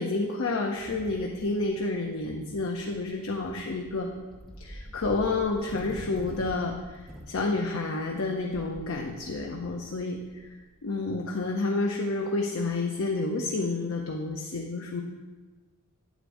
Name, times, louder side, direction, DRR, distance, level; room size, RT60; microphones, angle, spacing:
voice 1, 0.0-4.1 4.6-15.0, left 3 dB, 60° left, 0 dB, 0.6 m, -30 dB
sound 1, 0.8-11.0, equal, ahead, 0.8 m, -47 dB
8.8 x 7.9 x 2.6 m, 1.3 s
head